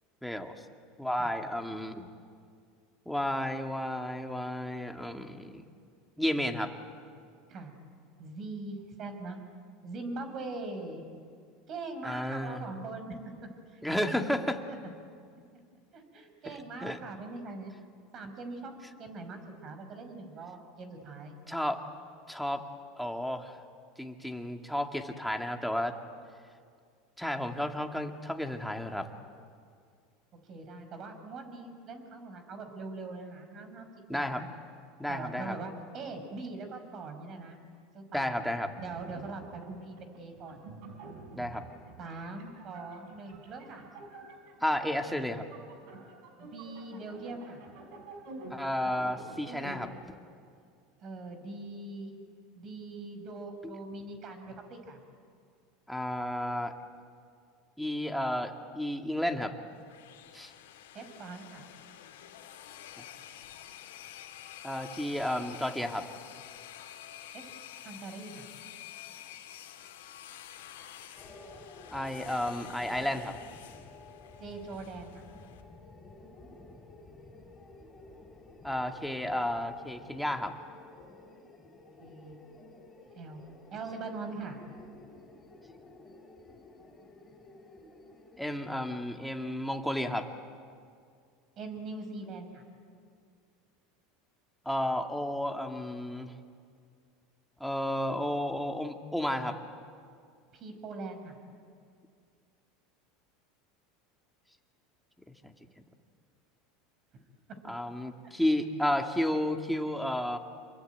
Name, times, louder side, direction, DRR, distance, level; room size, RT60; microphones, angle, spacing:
voice 1, 0.2-0.5 1.0-2.1 3.1-5.6 6.2-6.7 12.0-12.6 13.8-14.6 16.5-16.6 16.8-17.0 21.5-21.8 22.3-22.6 23.0-23.6 24.0-25.9 27.2-29.1 34.1-34.4 35.0-35.5 38.1-38.7 41.3-41.6 44.6-45.5 48.5-49.9 53.6-53.7 55.9-56.7 57.8-59.5 60.3-60.5 63.0-63.1 64.6-66.1 71.9-73.3 78.6-80.5 88.4-90.3 94.7-96.3 97.6-99.6 105.4-105.5 107.7-110.4, left 1 dB, ahead, 4 dB, 2.2 m, -32 dB
voice 2, 8.2-9.4 9.8-11.0 11.7-13.2 13.7-14.4 14.7-14.8 15.9-17.7 18.1-21.3 30.4-34.5 35.1-37.6 37.9-38.4 38.8-40.6 42.0-43.9 46.4-47.6 51.0-52.2 52.6-55.0 60.9-61.7 67.3-67.5 67.8-68.5 74.4-75.2 82.0-82.4 83.2-83.4 83.7-84.6 91.6-92.6 100.5-101.4, right 3 dB, 40° right, 7 dB, 5.4 m, -42 dB
sound 1, 38.4-49.9, right 2 dB, 65° right, 5.2 m, -49 dB
sound 2, 59.7-75.6, left 11 dB, 90° left, 3.0 m, -49 dB
sound 3, 71.1-88.9, left 2 dB, 20° left, 5.2 m, -52 dB
27.5 x 23.0 x 9.4 m, 2.2 s
supercardioid pair, 115°, 0 cm